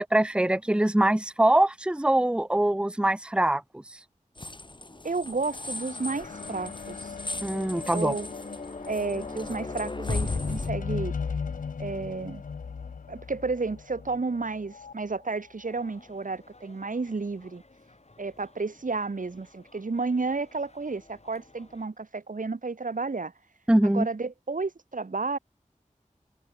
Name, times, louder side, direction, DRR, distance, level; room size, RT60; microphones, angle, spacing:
voice 1, 0.0-3.6 7.4-8.2 23.7-24.1, right 1 dB, 5° right, 0.7 m, -23 dB
sound 1, 4.4-10.7, left 2 dB, 35° left, 2.2 m, -37 dB
voice 2, 5.0-7.2 7.9-8.3 8.9-11.1 11.8-12.4 13.1-17.6 18.2-23.3 23.8-25.4, right 3 dB, 90° right, 1.9 m, -32 dB
sound 2, 5.4-14.9 15.7-15.8, left 5 dB, 90° left, 0.5 m, -37 dB
sound 3, 15.6-21.9, left 2 dB, 55° left, 4.5 m, -57 dB
wide cardioid pair, 55°, 13 cm